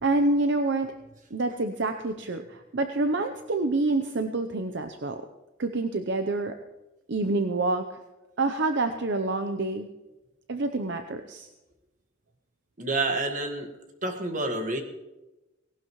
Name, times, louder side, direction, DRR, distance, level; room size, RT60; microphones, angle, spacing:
voice 1, 0.0-0.9 1.3-5.2 5.6-6.5 7.1-8.0 8.4-9.9 10.5-11.5, right 2 dB, 60° right, 7 dB, 0.7 m, -27 dB
voice 2, 12.8-13.7 14.0-14.8, right 2 dB, 40° right, 5 dB, 1.7 m, -28 dB
18.5 x 17.5 x 3.1 m, 1.0 s
head